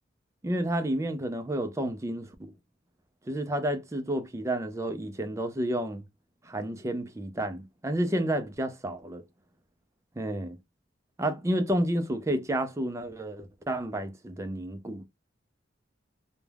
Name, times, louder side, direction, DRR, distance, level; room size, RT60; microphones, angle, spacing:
voice 1, 0.4-2.5 3.3-6.0 6.4-9.2 10.2-10.6 11.2-15.1, right 1 dB, 15° right, 0.4 m, -30 dB
2.3 x 2.1 x 3.2 m
head